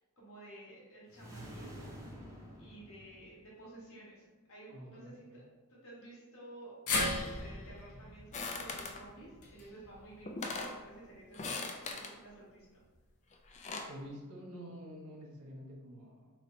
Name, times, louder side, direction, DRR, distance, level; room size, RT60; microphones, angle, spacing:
voice 1, 0.0-1.9 2.6-5.4 5.7-6.7 7.1-12.8, right 1 dB, 65° left, -6 dB, 1.3 m, -53 dB
sound 1, 1.1-3.7, equal, 15° right, 0.6 m, -49 dB
voice 2, 4.7-5.4 13.9-16.3, equal, 80° right, -2 dB, 0.8 m, -48 dB
sound 2, 6.9-11.1 11.5-11.6 12.7-12.8, left 2 dB, 85° left, 0.7 m, -38 dB
sound 3, 8.3-9.0 9.9-10.0 10.3-10.8 11.3-12.1 13.3-14.0, left 3 dB, 30° left, 0.3 m, -40 dB
3.2 x 2.1 x 3.8 m, 1.3 s
head